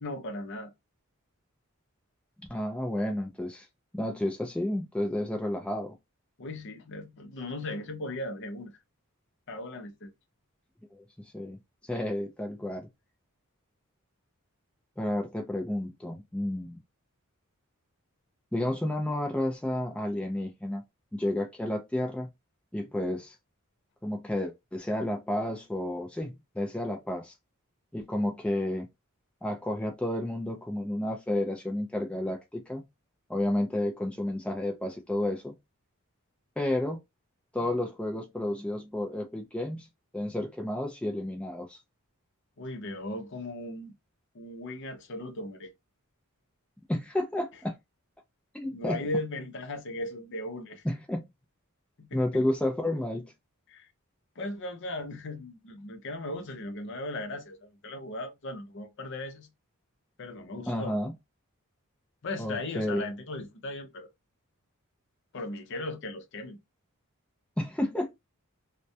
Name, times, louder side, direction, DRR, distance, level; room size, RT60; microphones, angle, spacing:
voice 1, 0.0-0.7 6.4-8.7 9.5-10.1 42.6-43.9 44.3-45.7 48.7-50.8 52.0-52.4 53.7-53.9 54.4-59.5 60.2-61.0 62.2-64.1 65.3-66.6, left 2 dB, 55° left, 0.6 m, -37 dB
voice 2, 2.5-3.7 3.9-6.0 10.9-11.6 11.8-12.9 15.0-16.8 18.5-20.8 21.1-22.3 22.7-23.4 24.0-27.3 27.9-28.9 29.4-32.9 33.3-35.6 36.6-37.0 37.5-39.9 40.1-41.8 46.9-47.8 48.5-49.0 50.8-51.2 52.1-53.3 60.7-61.1 62.4-63.1 67.6-68.1, left 1 dB, 5° left, 0.3 m, -31 dB
2.2 x 2.1 x 2.6 m
head